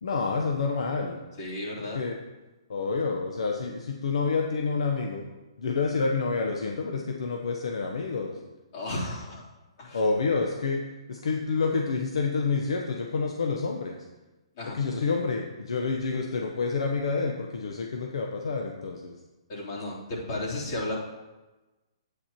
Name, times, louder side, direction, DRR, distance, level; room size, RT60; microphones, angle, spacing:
voice 1, 0.0-1.2 1.9-2.1 2.7-5.2 5.6-8.4 9.9-10.8 11.1-14.0 14.7-19.1, left 4 dB, 75° left, 2 dB, 0.9 m, -28 dB
voice 2, 1.4-2.0 8.7-9.4 9.8-10.0 14.6-14.8 19.5-21.0, left 1 dB, 50° left, -5 dB, 3.4 m, -33 dB
9.9 x 8.6 x 2.9 m, 1.1 s
hypercardioid pair, 140°, 3 cm